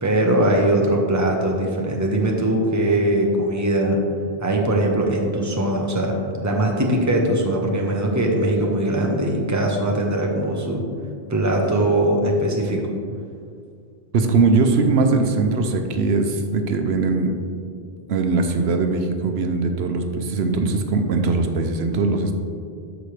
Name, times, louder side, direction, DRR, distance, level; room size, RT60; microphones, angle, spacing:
voice 1, 0.0-4.0 4.4-6.2 6.4-10.8 11.3-12.8, right 1 dB, 20° right, 0 dB, 0.9 m, -21 dB
voice 2, 14.1-17.3 18.1-22.3, right 3 dB, 90° right, 5 dB, 1.0 m, -20 dB
13.0 x 5.1 x 3.3 m, 2.3 s
omnidirectional pair, 1.0 m